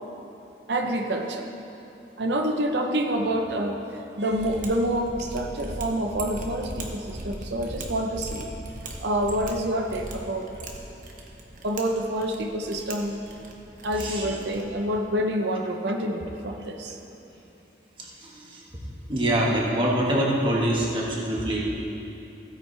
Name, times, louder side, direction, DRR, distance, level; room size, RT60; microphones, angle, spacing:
voice 1, 0.7-1.5 2.2-3.8 4.2-8.5 9.0-10.5 11.6-13.1 13.8-17.0, right 1 dB, 70° right, 3 dB, 0.8 m, -27 dB
Mechanisms, 4.3-14.8, right 1 dB, 45° right, 1.1 m, -39 dB
voice 2, 18.0-18.6 19.1-21.6, right 1 dB, 30° right, -3 dB, 1.5 m, -25 dB
15.5 x 9.2 x 3.3 m, 3.0 s
head